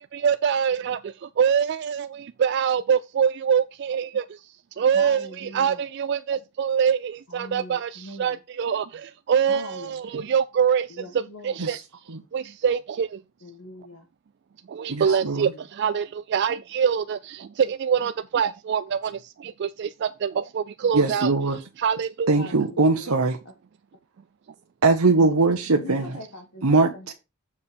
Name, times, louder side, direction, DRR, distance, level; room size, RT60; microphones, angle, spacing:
voice 1, 0.0-11.8 12.3-13.2 14.7-21.3 21.8-22.4, right 7 dB, 50° right, 0.3 m, -25 dB
voice 2, 4.9-5.8 7.3-8.4 9.5-10.0 10.9-11.6 13.4-14.1 15.0-15.6 22.3-23.1 25.8-27.1, left 1 dB, 75° left, 1.5 m, -41 dB
voice 3, 14.9-15.5 20.9-21.6 22.3-23.4 24.8-26.1 26.6-27.1, right 3 dB, 85° right, 1.0 m, -21 dB
7.1 x 4.8 x 5.1 m
head